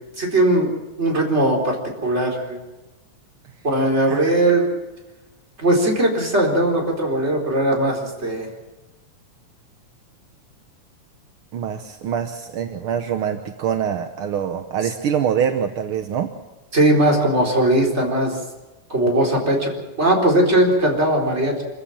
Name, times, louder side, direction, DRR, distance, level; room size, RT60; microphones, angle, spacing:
voice 1, 0.2-0.7 1.0-1.8 2.0-2.6 3.6-4.7 5.6-8.5 16.7-18.4 18.9-19.7 20.0-21.6, right 1 dB, 20° right, 0 dB, 4.3 m, -19 dB
voice 2, 11.5-16.3, right 8 dB, 60° right, 6 dB, 1.5 m, -24 dB
25.5 x 15.5 x 7.3 m, 1.1 s
omnidirectional pair, 3.4 m